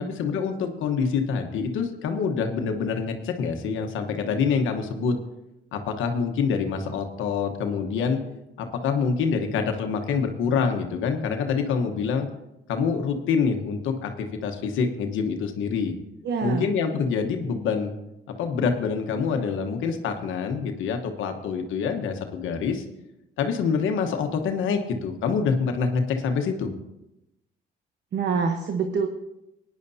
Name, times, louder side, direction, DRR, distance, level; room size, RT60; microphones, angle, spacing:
voice 1, 0.0-5.2 5.7-8.2 8.6-12.3 12.7-15.9 16.4-18.0 18.4-22.8 23.4-26.7, left 5 dB, 85° left, 5 dB, 1.2 m, -26 dB
voice 2, 16.2-16.7 28.1-29.1, right 5 dB, 60° right, 6 dB, 1.0 m, -26 dB
17.5 x 10.0 x 2.7 m, 0.91 s
cardioid pair, 90°, 20 cm